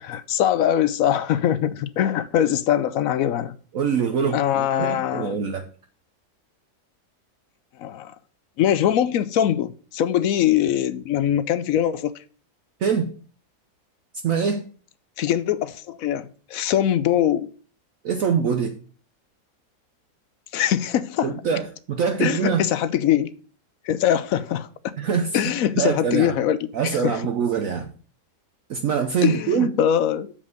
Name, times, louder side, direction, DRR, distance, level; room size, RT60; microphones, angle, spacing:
voice 1, 0.0-3.5 4.3-5.4 7.8-8.1 8.6-12.2 15.2-17.5 20.5-21.4 22.2-23.3 23.8-24.7 25.3-26.6 26.9-27.2 29.2-30.3, left 10 dB, 70° left, 0.9 m, -22 dB
voice 2, 3.7-5.6 12.8-13.1 14.2-14.7 18.0-18.8 21.2-22.7 25.0-25.4 25.8-26.4 26.7-27.9 28.7-29.7, right 6 dB, 60° right, 1.1 m, -24 dB
7.3 x 5.3 x 6.4 m
omnidirectional pair, 1.7 m